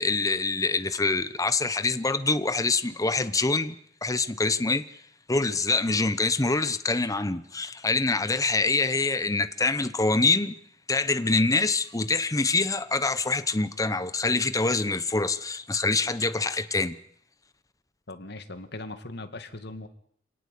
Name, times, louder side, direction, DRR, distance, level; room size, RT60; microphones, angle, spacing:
voice 1, 0.0-3.8 4.0-4.8 5.3-10.6 10.9-17.0, left 3 dB, 20° left, 1.0 m, -25 dB
voice 2, 18.1-19.9, left 2 dB, 60° left, 2.3 m, -39 dB
26.5 x 18.0 x 8.5 m
head